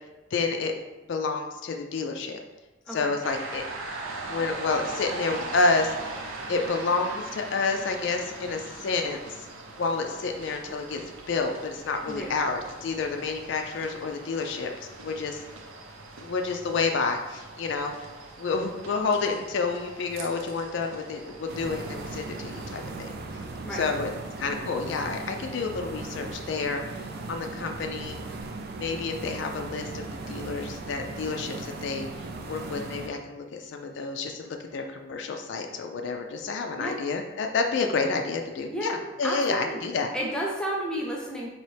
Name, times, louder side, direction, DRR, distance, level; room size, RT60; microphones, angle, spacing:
voice 1, 0.3-0.7 1.1-2.4 2.9-3.6 4.3-6.2 6.5-9.5 9.8-11.0 11.3-15.4 16.2-18.1 18.4-23.1 23.7-24.1 24.4-28.2 28.8-40.1, left 4 dB, 60° left, 4 dB, 0.3 m, -29 dB
sound 1, 3.2-22.9, right 2 dB, 90° right, 0.6 m, -41 dB
sound 2, 21.5-33.1, right 3 dB, 50° right, 0.3 m, -38 dB
voice 2, 39.2-39.8 40.1-41.5, equal, 5° left, -2 dB, 0.6 m, -31 dB
4.2 x 2.9 x 3.2 m, 1.1 s
head